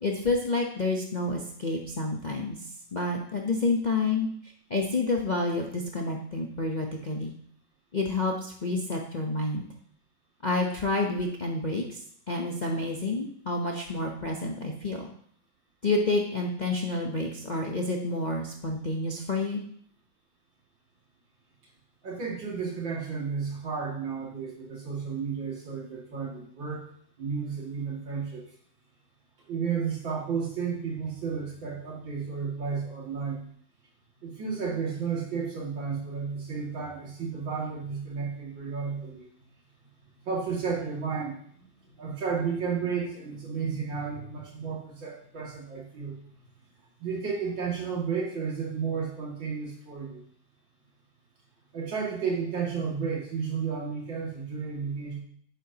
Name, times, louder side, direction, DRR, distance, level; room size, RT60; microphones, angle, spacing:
voice 1, 0.0-2.6 2.9-4.3 4.7-7.3 7.9-9.6 10.4-12.0 12.3-15.1 15.8-19.6, left 2 dB, 35° left, 0 dB, 0.7 m, -29 dB
voice 2, 22.0-26.9 27.2-28.4 29.5-33.4 34.2-39.3 40.3-41.6 42.0-46.1 47.0-50.2 51.7-55.2, right 6 dB, 80° right, -3 dB, 3.1 m, -32 dB
10.5 x 8.8 x 2.9 m, 0.63 s
omnidirectional pair, 2.0 m